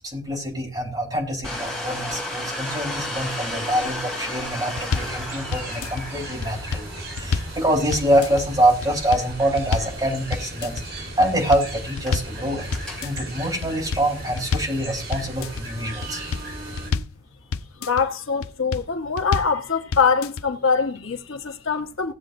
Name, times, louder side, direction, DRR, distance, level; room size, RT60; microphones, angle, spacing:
voice 1, 0.0-10.8 11.2-17.0, right 1 dB, 20° right, 3.9 m, -25 dB
Domestic sounds home sounds, 1.4-14.5, left 1 dB, 5° left, 3.8 m, -35 dB
sound 1, 4.8-5.2 5.5-6.1 6.4-7.6 7.9-8.5 8.8-9.3 9.6-10.0 10.3-10.8 11.2-12.4 12.7-13.2 13.6-14.8 15.1-15.7 16.0-17.2 17.5-18.1 18.4-18.9 19.2-19.6 19.9-20.4, left 5 dB, 90° left, 0.5 m, -28 dB
sound 2, 5.0-16.9, right 1 dB, 55° right, 5.5 m, -36 dB
voice 2, 17.8-22.1, left 5 dB, 75° left, 1.2 m, -23 dB
18.0 x 7.7 x 2.6 m
head